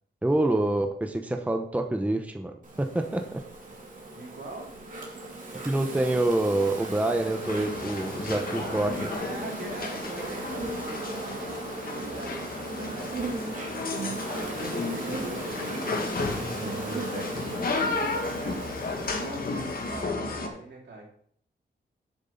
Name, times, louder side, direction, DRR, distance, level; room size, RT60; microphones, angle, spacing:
voice 1, 0.2-3.4 5.6-9.1, right 1 dB, 10° right, 5 dB, 0.8 m, -27 dB
Insect, 2.6-20.0, right 2 dB, 50° right, 2.5 m, -37 dB
voice 2, 4.1-4.8 8.5-16.0 16.5-21.1, right 3 dB, 80° right, -2 dB, 3.2 m, -42 dB
sound 1, 7.4-20.5, left 3 dB, 55° left, 1.7 m, -33 dB
7.9 x 6.9 x 5.7 m, 0.62 s
wide cardioid pair, 135°, 18 cm